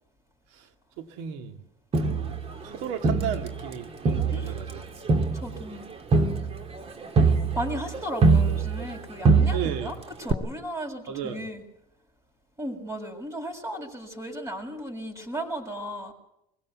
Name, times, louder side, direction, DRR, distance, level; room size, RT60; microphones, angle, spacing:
voice 1, 1.0-1.6 1.9-4.8 9.5-9.9 11.1-11.4, right 8 dB, 80° right, 2.2 m, -35 dB
Crowd, 1.9-3.7 4.1-9.0 9.2-9.9 10.3-10.4, right 4 dB, 35° right, 2.3 m, -23 dB
voice 2, 5.3-6.3 7.5-11.6 12.6-16.1, equal, 20° right, 6.7 m, -35 dB
23.0 x 17.0 x 8.4 m
supercardioid pair, 95°, 17 cm